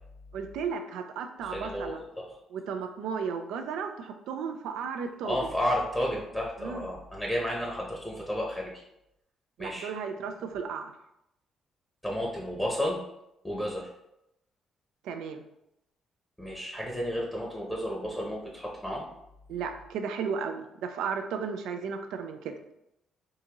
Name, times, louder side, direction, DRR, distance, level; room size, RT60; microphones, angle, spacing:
voice 1, 0.3-2.0 2.5-5.4 6.6-6.9 9.6-10.9 15.0-15.4 19.5-22.5, right 6 dB, 85° right, 6 dB, 0.4 m, -34 dB
voice 2, 1.4-2.2 5.2-8.8 9.6-9.9 12.0-13.0 13.4-13.9 16.4-19.1, equal, 5° left, -3 dB, 0.7 m, -32 dB
3.6 x 2.6 x 2.9 m, 0.83 s
cardioid pair, 90°, 0 cm